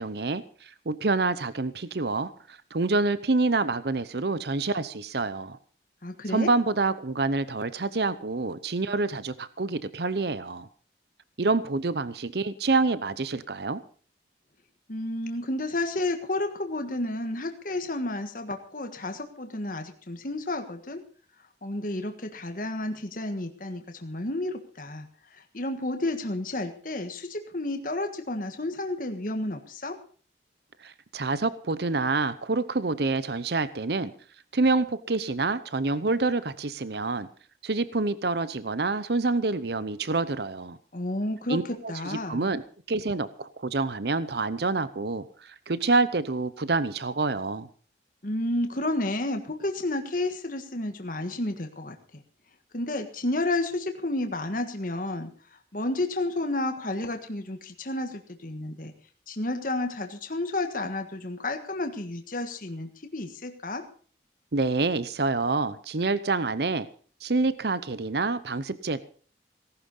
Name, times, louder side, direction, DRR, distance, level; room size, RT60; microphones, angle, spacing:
voice 1, 0.0-5.6 6.3-10.7 11.4-13.8 30.8-34.1 34.5-37.3 37.6-40.8 41.5-42.6 42.9-47.7 64.5-66.9 67.2-69.0, right 3 dB, 65° right, 15 dB, 0.8 m, -27 dB
voice 2, 6.0-6.5 14.9-21.0 21.6-30.0 40.9-42.5 48.2-52.2 52.7-58.9 59.3-63.8, left 2 dB, 50° left, 6 dB, 1.6 m, -31 dB
18.0 x 11.5 x 5.5 m, 0.43 s
head